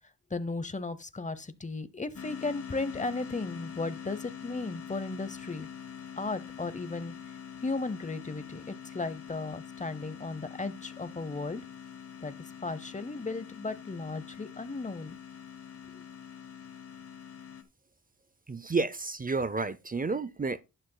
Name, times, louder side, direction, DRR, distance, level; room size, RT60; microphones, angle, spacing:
voice 1, 0.3-5.7 6.2-7.1 7.6-11.6 12.2-12.3 12.6-15.1 15.9-16.0, left 3 dB, 25° left, 0.7 m, -35 dB
sound 1, 2.2-17.6, left 8 dB, 45° left, 1.0 m, -45 dB
voice 2, 18.5-20.6, right 4 dB, 25° right, 0.5 m, -31 dB
11.0 x 9.6 x 2.2 m
wide cardioid pair, 110°, 32 cm